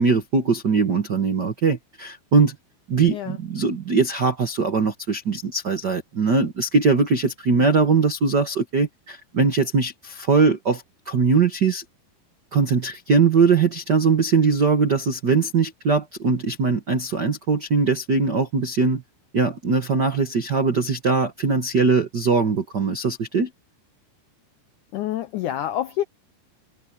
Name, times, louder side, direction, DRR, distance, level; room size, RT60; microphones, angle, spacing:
voice 1, 0.0-2.5 2.9-11.8 12.5-19.0 19.3-23.5, right 4 dB, 80° right, 0.9 m, -21 dB
voice 2, 3.1-3.4 24.9-26.0, left 12 dB, 80° left, 1.7 m, -27 dB
omnidirectional pair, 4.6 m